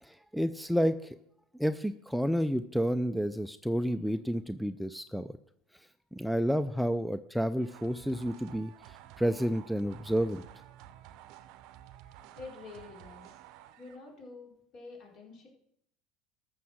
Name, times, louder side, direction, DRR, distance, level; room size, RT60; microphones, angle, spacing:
voice 1, 0.0-1.2 1.6-5.3 6.1-10.4, equal, ahead, 11 dB, 0.5 m, -30 dB
sound 1, 7.6-14.1, right 12 dB, 60° right, 0.7 m, -52 dB
voice 2, 11.9-13.4 13.8-15.5, left 3 dB, 55° left, -1 dB, 4.2 m, -48 dB
13.5 x 6.3 x 6.4 m, 0.76 s
hypercardioid pair, 75°, 0 cm